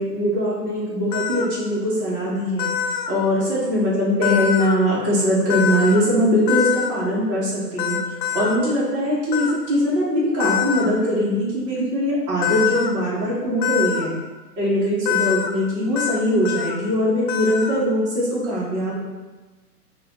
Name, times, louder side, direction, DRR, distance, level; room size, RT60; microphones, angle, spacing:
voice 1, 0.0-2.7 3.1-8.0 8.3-14.1 14.6-19.0, equal, 15° right, -9 dB, 0.7 m, -21 dB
sound 1, 1.1-1.5 2.6-3.1 4.2-4.8 5.5-6.0 6.5-6.9 7.8-8.6 9.3-9.5 10.4-10.9 12.4-12.9 13.6-14.1 15.1-15.5 16.0-16.2 16.4-16.8 17.3-17.8, left 9 dB, 80° left, 0.6 m, -24 dB
3.9 x 2.3 x 4.0 m, 1.2 s
hypercardioid pair, 145°, 50 cm